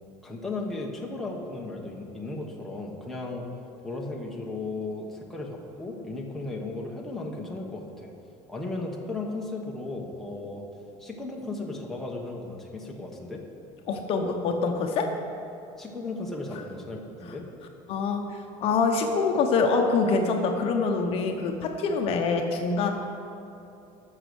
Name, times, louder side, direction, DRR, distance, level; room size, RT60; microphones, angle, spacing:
voice 1, 0.2-3.5 3.8-8.1 8.5-10.6 11.0-13.4 15.8-17.4, left 2 dB, ahead, -2 dB, 1.0 m, -35 dB
voice 2, 13.9-15.1 17.9-22.9, left 4 dB, 45° left, 3 dB, 0.9 m, -25 dB
13.5 x 6.4 x 6.2 m, 2.9 s
cardioid pair, 170°, 14 cm